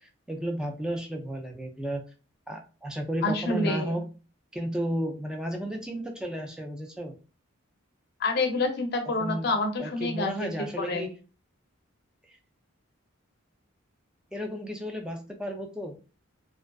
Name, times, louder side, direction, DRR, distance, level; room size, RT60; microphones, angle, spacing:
voice 1, 0.0-2.0 2.5-4.0 4.5-7.2 9.2-9.5 9.8-11.1 14.3-16.0, equal, 5° right, 2 dB, 0.3 m, -33 dB
voice 2, 3.2-3.9 8.2-10.5 10.8-11.1, left 2 dB, 50° left, 5 dB, 0.5 m, -28 dB
2.4 x 2.3 x 2.2 m, 0.34 s
head